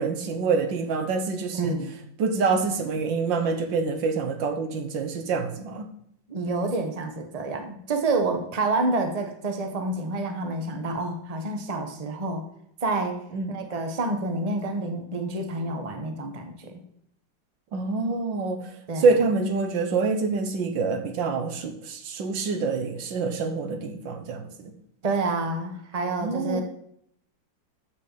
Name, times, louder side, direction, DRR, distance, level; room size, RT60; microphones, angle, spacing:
voice 1, 0.0-1.8 2.2-5.9 13.3-13.5 17.7-18.7 19.0-24.7 26.2-26.6, right 4 dB, 85° right, 6 dB, 1.8 m, -26 dB
voice 2, 1.5-2.0 6.3-12.4 12.8-13.2 13.5-16.8 18.9-19.1 25.0-26.6, right 2 dB, 25° right, 5 dB, 1.0 m, -28 dB
6.4 x 6.4 x 7.2 m, 0.71 s
omnidirectional pair, 2.0 m